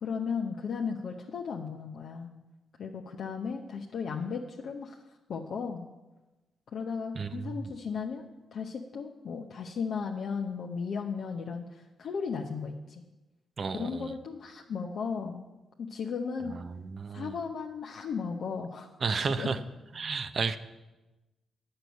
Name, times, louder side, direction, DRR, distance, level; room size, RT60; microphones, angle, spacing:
voice 1, 0.0-2.3 2.8-5.0 5.3-5.9 6.7-13.0 13.7-15.4 15.8-16.5 17.1-19.5, left 5 dB, 65° left, 1 dB, 0.8 m, -35 dB
voice 2, 7.1-7.6 13.6-14.1 16.5-17.4 19.0-19.6 19.9-20.6, right 5 dB, 55° right, 11 dB, 0.8 m, -32 dB
9.1 x 6.7 x 8.0 m, 1.1 s
hypercardioid pair, 45°, 0 cm